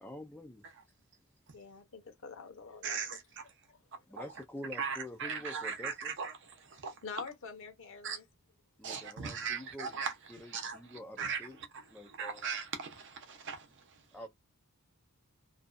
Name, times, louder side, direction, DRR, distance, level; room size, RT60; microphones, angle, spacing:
voice 1, 0.0-0.7 4.1-6.2 8.8-9.9 10.3-11.6 11.9-12.5 14.1-14.3, left 1 dB, 5° left, 0.4 m, -47 dB
voice 2, 1.5-4.0 7.0-8.3, left 5 dB, 60° left, 0.9 m, -47 dB
voice 3, 2.8-3.2 4.8-6.9 8.0-8.2 8.8-10.1 10.5-11.4 12.2-13.7, right 6 dB, 55° right, 0.8 m, -38 dB
2.6 x 2.3 x 2.4 m
head